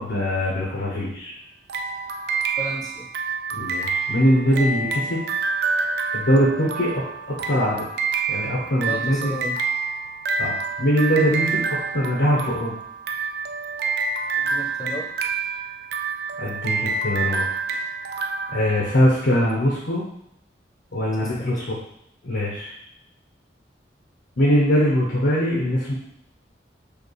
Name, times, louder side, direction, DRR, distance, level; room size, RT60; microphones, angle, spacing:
voice 1, 0.0-1.3 3.5-5.2 6.1-7.9 8.3-9.4 10.4-12.8 16.4-17.5 18.5-20.0 20.9-21.8 22.2-22.7 24.4-25.9, equal, 80° left, -5 dB, 0.8 m, -22 dB
sound 1, 1.7-19.4, right 4 dB, 60° right, 0.3 m, -28 dB
voice 2, 2.6-3.1 8.9-9.6 14.4-15.1 21.2-21.6, equal, 20° left, 0 dB, 0.6 m, -33 dB
4.9 x 2.4 x 3.1 m, 0.74 s
head